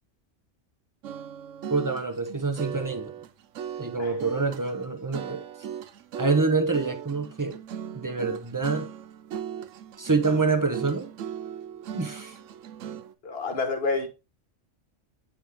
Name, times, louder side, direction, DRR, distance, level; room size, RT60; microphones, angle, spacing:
sound 1, 1.0-13.1, right 9 dB, 85° right, 1.0 m, -38 dB
voice 1, 1.7-3.1 3.8-5.4 6.2-7.6 7.9-8.9 10.0-11.1 11.9-12.4, right 4 dB, 20° right, 0.6 m, -26 dB
voice 2, 13.2-14.1, left 3 dB, 55° left, 1.4 m, -28 dB
9.2 x 3.5 x 3.3 m
omnidirectional pair, 1.3 m